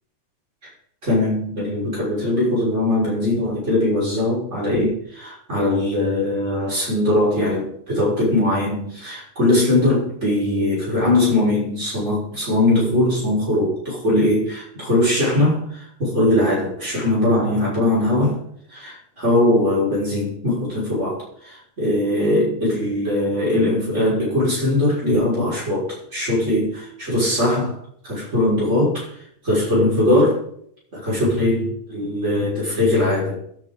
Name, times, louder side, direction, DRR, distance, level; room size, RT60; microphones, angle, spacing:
voice 1, 1.0-18.4 18.7-27.8 28.0-29.1 29.4-30.4 30.9-33.4, left 1 dB, 85° right, -7 dB, 6.2 m, -20 dB
22.5 x 10.5 x 4.0 m, 0.69 s
omnidirectional pair, 1.2 m